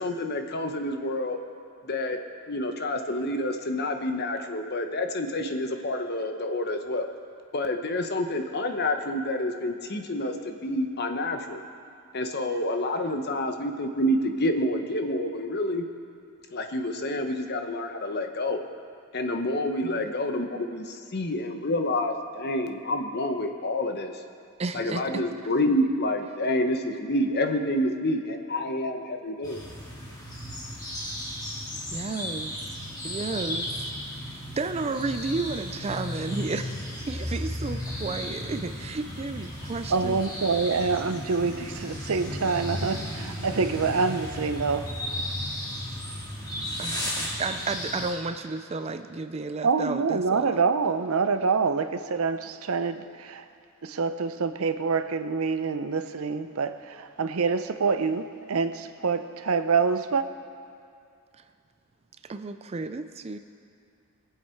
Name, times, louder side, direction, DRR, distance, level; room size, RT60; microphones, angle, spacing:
voice 1, 0.0-1.4 1.8-2.2 2.5-7.0 7.5-11.6 12.1-15.8 16.5-18.6 19.1-24.1 24.7-29.6, left 1 dB, 45° left, 1.0 m, -28 dB
voice 2, 24.6-25.2 31.9-32.5 33.0-33.7 34.3-40.2 46.8-50.6 62.2-63.4, right 3 dB, 30° right, 0.4 m, -32 dB
sound 1, 29.4-48.1, left 1 dB, 20° left, 2.0 m, -34 dB
voice 3, 39.9-44.9 49.6-53.4 53.8-60.3, right 4 dB, 70° right, 0.6 m, -26 dB
22.0 x 8.0 x 4.5 m
head